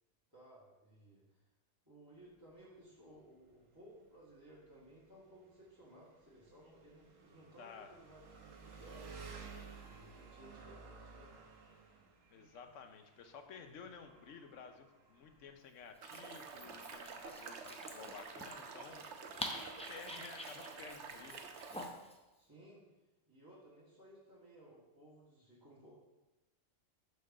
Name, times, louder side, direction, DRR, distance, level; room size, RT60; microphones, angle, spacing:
voice 1, 0.3-1.5 1.8-9.3 9.8-11.4 22.3-22.9 23.3-26.0, right 1 dB, 15° right, -8 dB, 1.6 m, -59 dB
Engine, 2.1-21.7, right 5 dB, 80° right, 1.4 m, -57 dB
voice 2, 7.6-7.9 12.3-19.1 19.9-21.5, left 6 dB, 75° left, 7 dB, 1.1 m, -53 dB
Dog, 15.9-22.2, left 1 dB, 5° left, 0.5 m, -48 dB
sound 1, 16.0-21.9, right 5 dB, 65° right, 1.0 m, -49 dB
6.8 x 4.8 x 5.8 m, 1.1 s
omnidirectional pair, 1.3 m